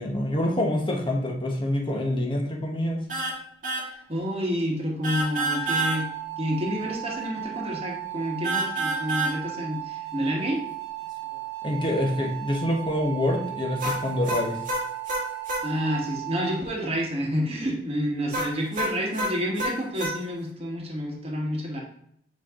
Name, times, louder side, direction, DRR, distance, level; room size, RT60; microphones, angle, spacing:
voice 1, 0.0-3.0 11.6-14.6, left 1 dB, 30° left, 0 dB, 1.1 m, -26 dB
sound 1, 3.1-3.4 3.6-3.9 5.0-6.0 8.4-9.4 13.8-15.7 18.3-20.2, right 1 dB, 50° right, 1.5 m, -28 dB
voice 2, 4.1-6.1 6.4-10.6 15.6-21.8, equal, 35° right, -1 dB, 1.4 m, -29 dB
sound 2, 5.4-16.6, right 15 dB, 75° right, 0.8 m, -36 dB
8.5 x 3.1 x 3.7 m, 0.70 s
head